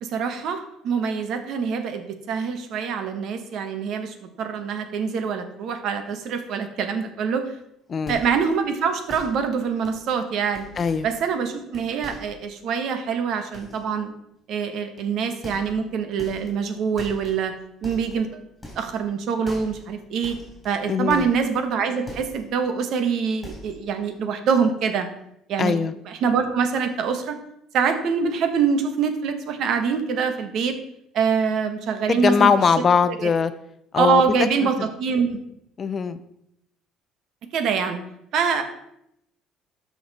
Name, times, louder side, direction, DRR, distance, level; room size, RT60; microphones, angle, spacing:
voice 1, 0.0-7.5 8.1-10.7 11.0-14.1 14.5-17.5 17.8-18.4 18.8-20.4 20.6-25.1 25.5-25.8 26.1-27.4 27.7-30.7 31.1-32.5 33.2-33.3 33.9-35.4 37.5-38.0 38.3-38.6, right 6 dB, 60° right, 8 dB, 1.3 m, -24 dB
voice 2, 7.9-8.2 10.8-11.1 20.9-21.3 25.6-25.9 32.1-33.5 33.9-34.2 35.8-36.2, left 6 dB, 35° left, 12 dB, 0.5 m, -20 dB
sound 1, 8.0-8.5 9.1-9.5 9.8-10.1 10.6-11.5 11.7-12.4 13.5-13.9 15.0-15.1 15.4-15.9 16.2-16.6 17.0-17.4 17.8-18.3 18.6-19.1 19.5-19.9 20.2-21.7 22.0-22.5 22.9-23.0 23.4-23.9 24.1-24.5 24.7-24.8, equal, 10° left, 3.9 m, -42 dB
12.5 x 5.9 x 4.2 m, 0.78 s
cardioid pair, 125°, 0 cm